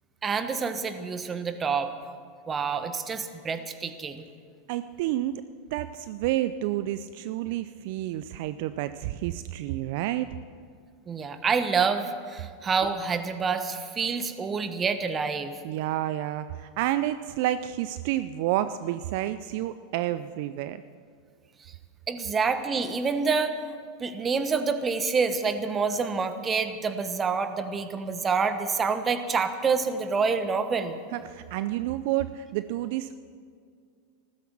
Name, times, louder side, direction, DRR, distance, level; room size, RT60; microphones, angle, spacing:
voice 1, 0.2-1.9 2.5-4.2 11.1-15.5 22.1-23.6 24.0-31.0, right 5 dB, 25° right, 10 dB, 1.2 m, -27 dB
voice 2, 4.7-5.4 5.7-10.3 15.6-20.8 31.1-33.2, right 14 dB, 60° right, 13 dB, 0.4 m, -29 dB
15.0 x 13.5 x 6.2 m, 2.1 s
hypercardioid pair, 95°, 0 cm